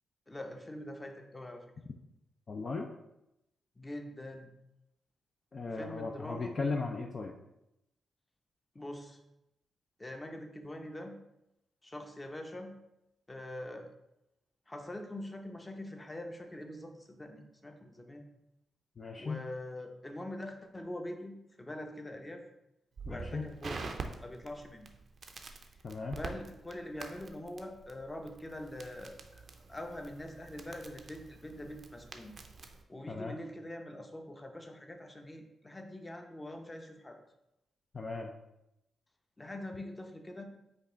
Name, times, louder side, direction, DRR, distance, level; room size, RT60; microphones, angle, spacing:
voice 1, 0.3-1.7 3.8-4.5 5.7-6.5 8.7-9.2 10.0-11.2 11.8-12.8 13.3-13.9 14.7-18.3 19.2-22.4 23.1-24.9 26.1-32.3 32.9-37.2 39.4-40.4, left 1 dB, 25° left, 4 dB, 0.8 m, -44 dB
voice 2, 2.5-2.9 5.5-7.3 19.0-19.4 23.1-23.5 25.8-26.2 33.1-33.4 37.9-38.3, left 3 dB, 50° left, 1 dB, 0.5 m, -37 dB
Crackle, 23.0-32.8, right 4 dB, 60° right, 0.5 m, -46 dB
5.2 x 2.5 x 4.0 m, 0.88 s
supercardioid pair, 50°, 0 cm